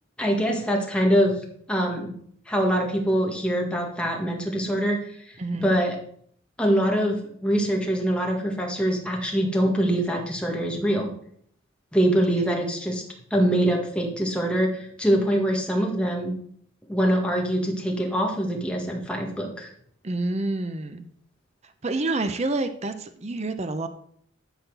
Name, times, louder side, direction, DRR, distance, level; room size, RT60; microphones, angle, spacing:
voice 1, 0.2-1.4 1.7-2.1 2.5-6.0 6.6-11.1 11.9-13.0 13.3-16.3 16.9-19.7, equal, 5° left, 0 dB, 1.8 m, -24 dB
voice 2, 5.4-5.7 20.0-21.1 21.8-23.9, right 2 dB, 35° right, 9 dB, 0.7 m, -28 dB
12.0 x 4.3 x 6.8 m, 0.64 s
head